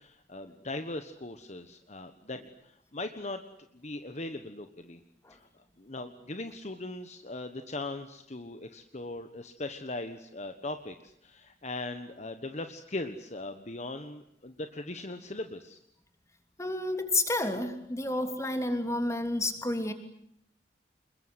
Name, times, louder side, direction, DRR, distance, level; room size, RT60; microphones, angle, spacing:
voice 1, 0.0-3.4 3.7-5.0 5.3-5.5 5.8-15.8, left 2 dB, 40° left, 8 dB, 1.3 m, -39 dB
voice 2, 16.6-19.9, left 2 dB, 15° left, 7 dB, 3.1 m, -30 dB
27.5 x 22.5 x 8.2 m, 0.73 s
head